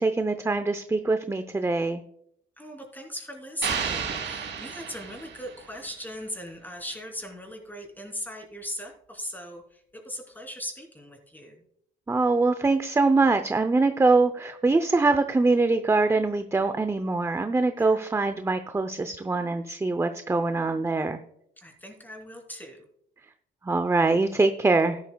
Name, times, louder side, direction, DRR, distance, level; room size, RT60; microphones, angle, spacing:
voice 1, 0.0-2.0 12.1-21.2 23.6-25.0, right 3 dB, 15° right, 8 dB, 0.6 m, -23 dB
voice 2, 2.6-11.6 17.7-18.0 21.6-22.8, equal, 10° left, 2 dB, 3.3 m, -39 dB
sound 1, 3.6-5.8, right 6 dB, 65° right, 3.3 m, -32 dB
13.5 x 11.5 x 2.3 m, 0.70 s
cardioid pair, 90°, 20 cm